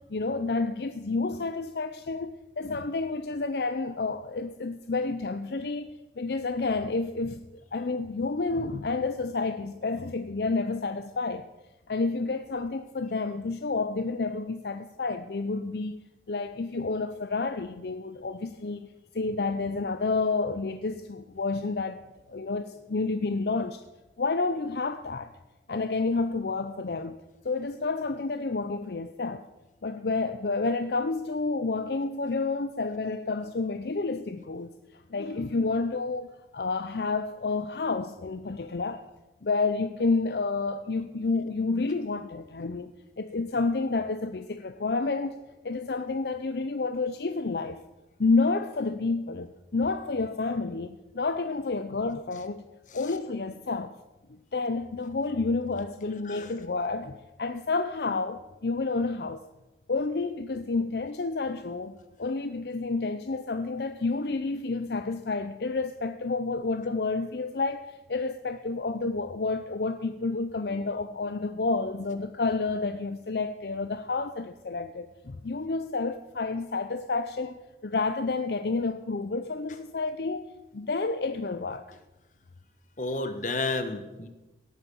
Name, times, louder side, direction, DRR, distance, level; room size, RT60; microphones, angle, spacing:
voice 1, 0.0-7.4 7.7-11.4 11.9-16.0 16.3-18.9 19.1-22.0 22.3-23.8 24.2-25.3 25.7-29.5 29.8-39.0 39.4-45.4 45.6-47.8 48.2-52.6 52.9-53.9 54.3-59.5 59.9-81.9, left 3 dB, 65° left, 0.6 m, -30 dB
voice 2, 83.0-84.3, left 3 dB, 45° left, 1.4 m, -31 dB
17.5 x 8.4 x 7.0 m
head